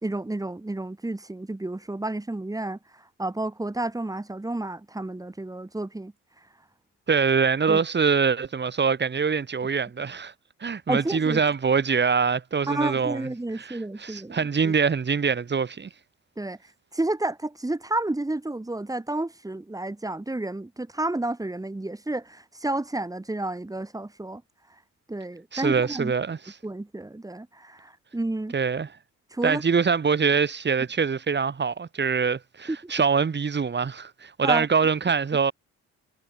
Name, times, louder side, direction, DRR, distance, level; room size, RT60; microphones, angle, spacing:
voice 1, 0.0-6.1 7.7-7.8 10.9-11.4 12.7-14.7 16.4-16.6 16.9-24.4 25.1-26.1 26.6-28.5 29.3-29.6 32.7-32.9 34.4-34.7, right 2 dB, 10° right, 2.4 m, -31 dB
voice 2, 7.1-10.3 10.6-13.3 13.6-15.9 25.5-26.5 28.5-28.9 29.4-35.5, right 5 dB, 35° right, 3.0 m, -24 dB
cardioid pair, 90°, 30 cm